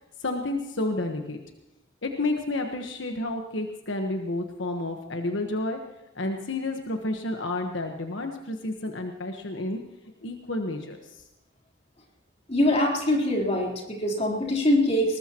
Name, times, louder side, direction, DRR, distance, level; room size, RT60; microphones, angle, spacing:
voice 1, 0.2-1.4 2.0-5.8 6.1-9.8 10.2-11.2, left 2 dB, 80° left, 3 dB, 1.3 m, -30 dB
voice 2, 12.5-15.2, left 1 dB, 35° left, -2 dB, 3.8 m, -23 dB
20.5 x 19.5 x 3.0 m, 0.90 s
head